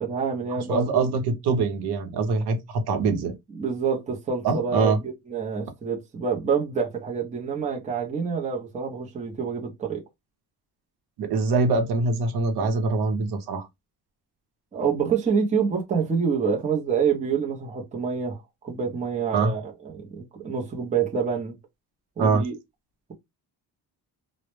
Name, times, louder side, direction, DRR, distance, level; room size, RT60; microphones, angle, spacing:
voice 1, 0.0-1.1 3.5-10.0 14.7-18.4 18.6-21.5 22.2-22.6, right 6 dB, 20° right, 0.5 m, -27 dB
voice 2, 0.5-3.3 4.4-5.0 11.2-13.7 19.3-19.5 22.2-22.4, right 4 dB, 80° right, 0.7 m, -24 dB
2.0 x 2.0 x 2.9 m
cardioid pair, 155°, 38 cm